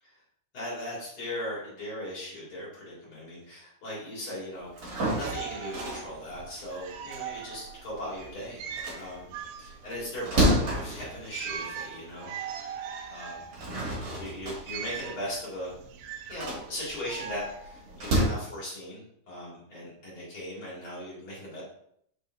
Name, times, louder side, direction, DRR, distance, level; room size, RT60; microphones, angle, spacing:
voice 1, 0.5-8.6 8.9-9.3 9.6-12.8 13.1-13.5 14.2-15.7 16.3-21.6, left 1 dB, 45° left, -6 dB, 1.8 m, -38 dB
sound 1, 4.6-8.2 8.6-12.1 12.6-12.7 13.3-18.2, equal, 45° right, 2.6 m, -31 dB
sound 2, 5.2-18.2, right 7 dB, 80° right, 2.5 m, -41 dB
6.7 x 5.3 x 2.6 m, 0.69 s
omnidirectional pair, 5.5 m